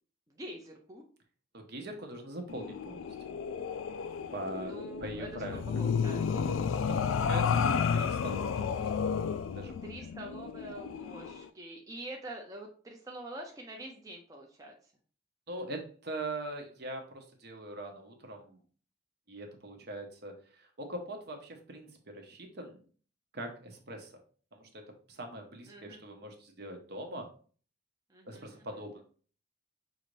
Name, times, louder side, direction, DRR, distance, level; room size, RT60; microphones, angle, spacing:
voice 1, 0.3-1.0 4.6-7.3 9.8-14.7 25.7-26.0 28.1-28.7, right 1 dB, 15° right, 0 dB, 0.5 m, -46 dB
voice 2, 1.5-3.2 4.3-4.7 5.0-5.6 6.7-8.9 9.5-10.0 15.5-18.6 19.3-22.9 23.3-24.1 24.5-27.3 28.2-29.0, right 1 dB, 55° right, 4 dB, 0.8 m, -42 dB
sound 1, 2.5-11.4, left 6 dB, 80° left, 0.3 m, -32 dB
5.5 x 2.5 x 3.1 m, 0.42 s
head